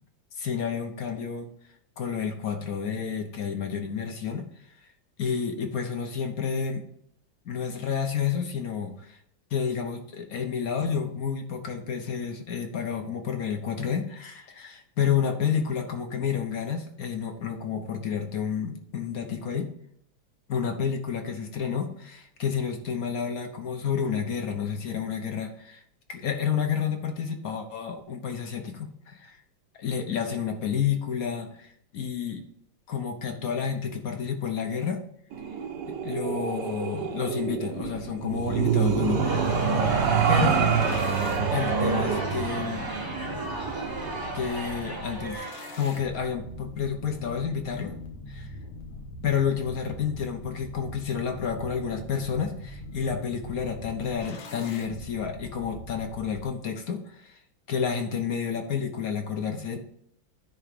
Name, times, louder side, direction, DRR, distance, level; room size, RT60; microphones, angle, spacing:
voice 1, 0.4-1.5 2.0-4.4 5.2-6.8 7.4-9.2 9.5-19.7 20.5-25.8 26.1-29.4 29.8-32.4 32.9-35.0 35.8-39.6 40.3-40.6 41.5-42.9 44.3-45.4 45.8-48.0 48.3-48.5 49.2-57.4 57.7-59.8, left 7 dB, 55° left, 5 dB, 1.3 m, -30 dB
sound 1, 35.3-44.3, right 6 dB, 65° right, 1.5 m, -27 dB
sound 2, 39.0-56.4, left 2 dB, 85° left, 1.9 m, -41 dB
Crowd, 39.0-46.3, right 2 dB, 15° right, 0.9 m, -34 dB
10.5 x 3.8 x 5.2 m, 0.70 s
omnidirectional pair, 2.1 m